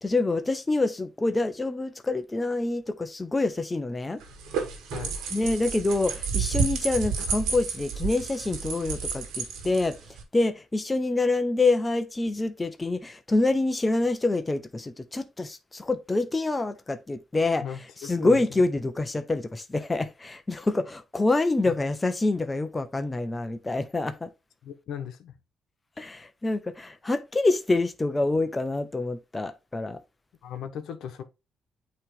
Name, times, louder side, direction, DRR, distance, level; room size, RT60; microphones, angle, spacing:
voice 1, 0.0-4.2 5.3-24.3 26.0-30.0, left 2 dB, 20° left, 0.7 m, -26 dB
sound 1, 4.2-10.2, right 5 dB, 90° right, 1.6 m, -31 dB
voice 2, 17.6-18.4 21.7-21.8 24.6-25.3 30.4-31.2, left 8 dB, 75° left, 1.0 m, -37 dB
8.6 x 3.1 x 3.6 m
cardioid pair, 90°, 0 cm